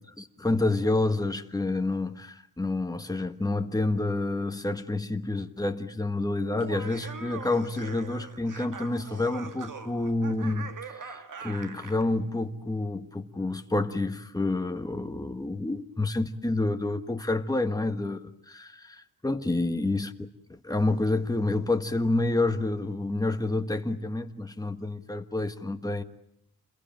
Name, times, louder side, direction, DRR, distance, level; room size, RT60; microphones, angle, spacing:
voice 1, 0.2-18.7 19.2-20.1 20.5-26.0, left 2 dB, 10° left, 1.4 m, -28 dB
Laughter, 6.5-12.1, right 5 dB, 60° right, 1.9 m, -42 dB
28.5 x 22.0 x 8.9 m
wide cardioid pair, 155°, 36 cm